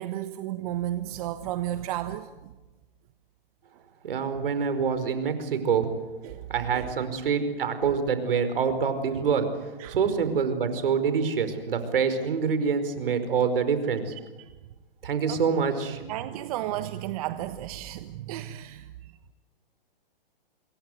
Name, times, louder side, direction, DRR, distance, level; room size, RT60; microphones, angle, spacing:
voice 1, 0.0-2.5 6.2-6.5 6.7-6.9 7.8-7.9 9.8-10.0 14.4-14.5 15.3-15.4 16.1-19.1, right 13 dB, 40° right, 9 dB, 1.3 m, -33 dB
voice 2, 4.0-5.9 6.5-9.5 9.9-14.1 15.0-16.0, right 6 dB, 70° right, 10 dB, 5.1 m, -26 dB
27.0 x 22.5 x 8.1 m, 1.2 s
hypercardioid pair, 140°, 29 cm